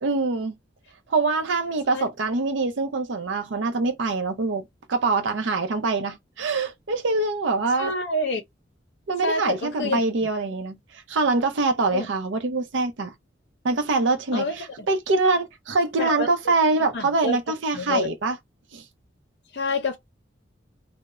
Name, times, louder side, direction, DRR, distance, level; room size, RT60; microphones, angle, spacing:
voice 1, 0.0-0.5 1.1-4.6 4.9-7.9 9.1-13.1 13.6-18.4 18.7-18.8, right 3 dB, 85° right, 0.5 m, -24 dB
voice 2, 7.8-8.4 9.2-10.3 11.9-12.1 14.3-14.6 16.0-16.3 16.9-17.4 17.7-18.1 19.5-20.0, left 2 dB, 60° left, 0.5 m, -27 dB
2.3 x 2.0 x 2.9 m
head